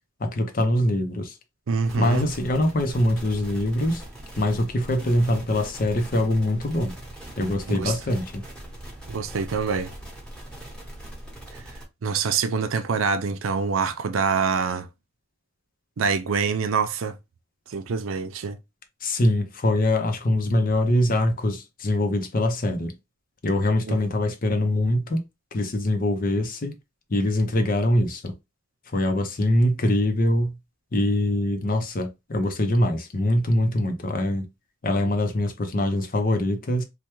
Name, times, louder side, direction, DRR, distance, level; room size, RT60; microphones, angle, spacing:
voice 1, 0.2-1.4 2.0-4.0 4.4-6.9 7.4-8.4 19.0-22.9 23.4-25.2 25.5-26.7 27.1-28.3 28.9-30.5 30.9-34.4 34.8-36.8, left 1 dB, 45° left, 0.6 m, -23 dB
voice 2, 1.7-2.3 7.7-7.9 9.1-9.9 12.0-14.9 16.0-17.2 17.7-18.6 23.9-24.0, right 5 dB, 85° right, 0.5 m, -25 dB
sound 1, 1.8-11.8, right 1 dB, 5° left, 1.1 m, -41 dB
3.2 x 2.2 x 3.0 m
head